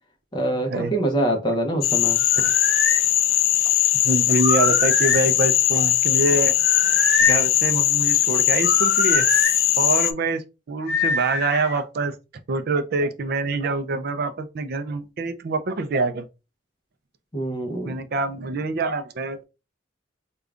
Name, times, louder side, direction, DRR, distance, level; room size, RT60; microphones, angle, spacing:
voice 1, 0.3-2.2 17.3-18.0, right 1 dB, 20° left, 0.6 m, -25 dB
Frog, 1.8-10.1, left 13 dB, 75° left, 0.3 m, -20 dB
sound 1, 2.2-3.0 4.4-5.3 6.6-7.5 8.6-9.6 10.9-11.7, left 3 dB, 50° left, 1.1 m, -24 dB
voice 2, 4.0-6.6 7.2-9.3 9.8-12.1 12.5-16.2 17.8-19.4, right 3 dB, 50° right, 0.4 m, -25 dB
5.0 x 2.3 x 2.4 m
head